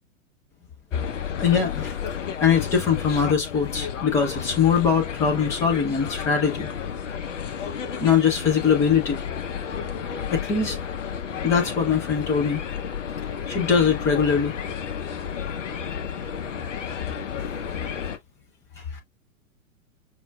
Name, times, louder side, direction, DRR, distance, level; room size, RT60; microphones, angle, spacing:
sound 1, 0.9-18.2, left 7 dB, 65° left, 0.7 m, -32 dB
voice 1, 1.4-2.0 2.4-6.7 8.0-9.2 10.3-10.8 11.4-12.6 13.5-14.5 18.9-19.0, left 6 dB, 5° left, 0.4 m, -22 dB
5.5 x 2.2 x 2.3 m
figure-of-eight pair, 105°, 41 cm